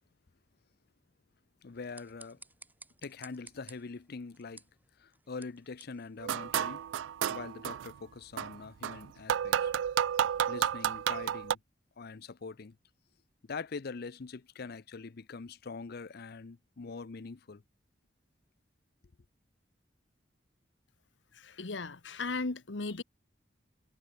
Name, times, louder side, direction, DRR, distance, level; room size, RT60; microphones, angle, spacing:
voice 1, 1.6-2.4 3.0-4.6 5.0-6.8 7.3-9.7 10.5-11.6 12.0-12.8 13.4-17.6, left 4 dB, 55° left, 0.6 m, -43 dB
sound 1, 1.7-7.0, right 3 dB, 10° right, 3.8 m, -57 dB
sound 2, 6.2-7.9 8.4-11.5, right 9 dB, 75° right, 0.3 m, -31 dB
voice 2, 21.3-23.0, left 3 dB, 75° left, 1.2 m, -36 dB
head